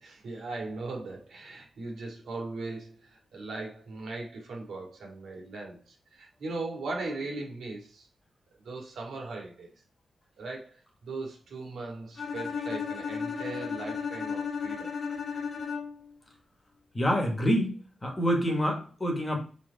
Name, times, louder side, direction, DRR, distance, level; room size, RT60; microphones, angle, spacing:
voice 1, 0.0-8.1 8.6-9.7 10.4-10.8 11.0-14.9, right 3 dB, 80° right, 2.2 m, -39 dB
Bowed string instrument, 12.2-16.1, left 6 dB, 65° left, 1.6 m, -34 dB
voice 2, 16.9-19.4, equal, 15° left, 1.6 m, -27 dB
6.2 x 4.1 x 4.1 m
wide cardioid pair, 150°, 0 cm